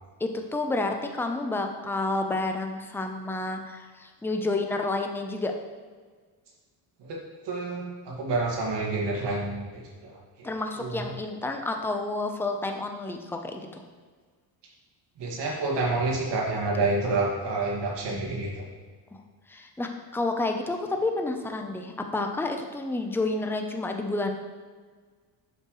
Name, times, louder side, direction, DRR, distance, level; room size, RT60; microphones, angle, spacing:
voice 1, 0.2-5.5 10.4-13.7 19.1-19.2 19.5-24.3, left 2 dB, 5° left, 4 dB, 0.7 m, -30 dB
voice 2, 7.5-9.7 10.0-10.1 10.4-10.5 10.8-10.9 15.2-18.6, right 3 dB, 65° right, -2 dB, 2.0 m, -28 dB
8.0 x 6.5 x 3.1 m, 1.5 s
cardioid pair, 100°, 45 cm